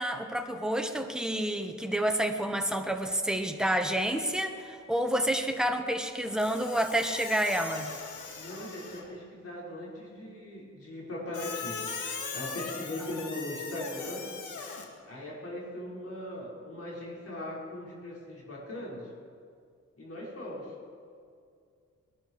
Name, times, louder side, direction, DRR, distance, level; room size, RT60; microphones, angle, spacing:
voice 1, 0.0-7.9 13.1-13.3, right 1 dB, ahead, 5 dB, 1.4 m, -29 dB
Squeak, 6.4-9.2 11.3-14.9, left 5 dB, 80° left, 2.0 m, -39 dB
voice 2, 8.3-11.8 12.3-14.2 15.0-19.0 20.0-20.7, left 1 dB, 50° left, -4 dB, 5.2 m, -39 dB
21.0 x 12.5 x 4.8 m, 2.3 s
cardioid pair, 90°, 30 cm